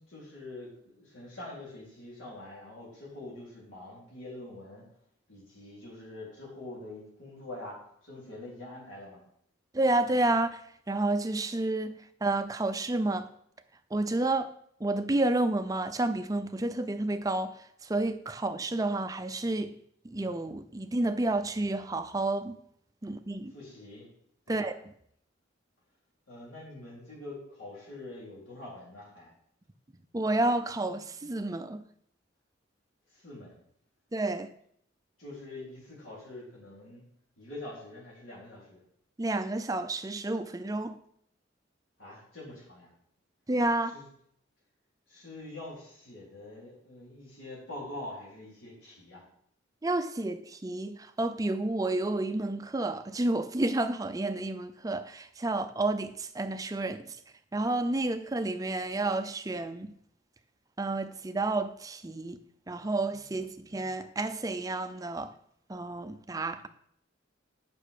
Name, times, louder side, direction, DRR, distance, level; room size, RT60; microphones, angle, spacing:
voice 1, 0.0-4.9 5.3-9.2 23.5-24.1 24.5-24.7 26.3-29.3 33.1-33.5 35.2-37.0 37.4-38.8 42.0-42.9 43.8-44.0 45.1-49.3, left 2 dB, 80° left, 4.2 m, -45 dB
voice 2, 9.7-10.6 10.9-13.3 13.9-14.5 14.8-17.5 17.9-19.7 20.0-22.5 23.0-23.5 24.5-24.7 30.1-31.8 34.1-34.5 39.2-41.0 43.5-44.0 49.8-57.2 57.5-59.9 60.8-62.4 62.7-65.3 65.7-66.7, right 2 dB, 20° right, 0.4 m, -30 dB
8.7 x 6.0 x 4.9 m
head